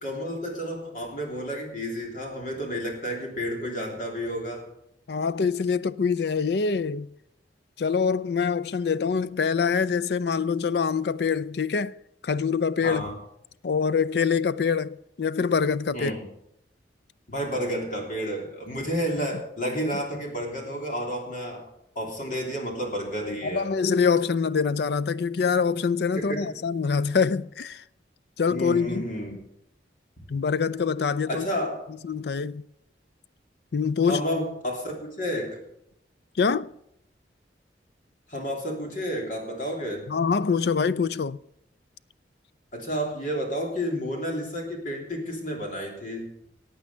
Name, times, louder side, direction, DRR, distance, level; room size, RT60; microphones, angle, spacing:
voice 1, 0.0-4.7 12.8-13.1 15.9-16.3 17.3-21.6 21.9-23.7 26.1-26.4 28.5-29.4 31.3-31.7 34.0-35.6 38.3-40.1 42.7-46.3, equal, 45° left, 3.2 m, -31 dB
voice 2, 5.1-7.1 7.8-12.0 12.2-13.0 13.6-16.2 23.4-27.8 28.4-29.0 30.3-31.5 32.0-32.6 33.7-34.2 36.4-36.7 40.1-41.4, left 5 dB, 60° left, 0.4 m, -25 dB
15.5 x 8.9 x 5.5 m
head